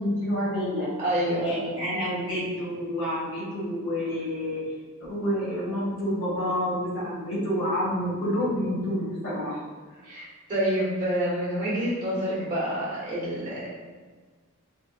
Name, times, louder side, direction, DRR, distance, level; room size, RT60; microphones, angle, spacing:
voice 1, 0.0-0.9 1.4-4.7 5.0-9.6, equal, 70° left, -8 dB, 1.5 m, -28 dB
voice 2, 1.0-1.5 10.0-13.7, right 1 dB, 40° right, -9 dB, 1.3 m, -27 dB
3.5 x 2.6 x 2.4 m, 1.4 s
head